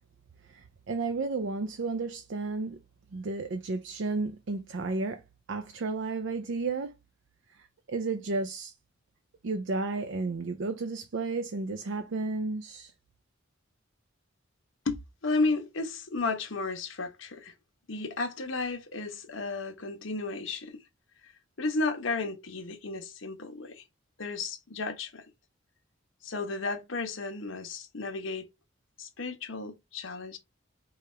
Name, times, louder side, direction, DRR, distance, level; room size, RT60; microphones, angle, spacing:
voice 1, 0.4-2.8 3.1-5.2 5.5-6.9 7.5-8.7 9.4-12.9, right 3 dB, 70° right, 0.5 m, -32 dB
voice 2, 14.8-17.5 17.9-20.8 21.2-21.3 21.6-23.8 24.2-25.2 26.2-28.5 29.0-30.4, left 3 dB, 80° left, 1.0 m, -33 dB
4.9 x 2.4 x 4.3 m
head